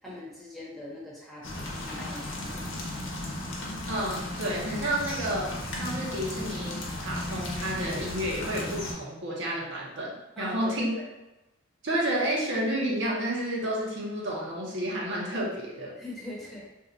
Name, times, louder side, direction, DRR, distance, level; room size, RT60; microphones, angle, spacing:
voice 1, 0.0-2.7 10.4-11.1 16.0-16.7, left 1 dB, ahead, -7 dB, 0.8 m, -41 dB
sound 1, 1.4-8.9, left 1 dB, 70° left, 0.8 m, -35 dB
voice 2, 3.9-5.5 5.8-10.9 11.8-15.9, right 1 dB, 60° right, -4 dB, 0.8 m, -30 dB
2.7 x 2.3 x 3.8 m, 0.97 s
head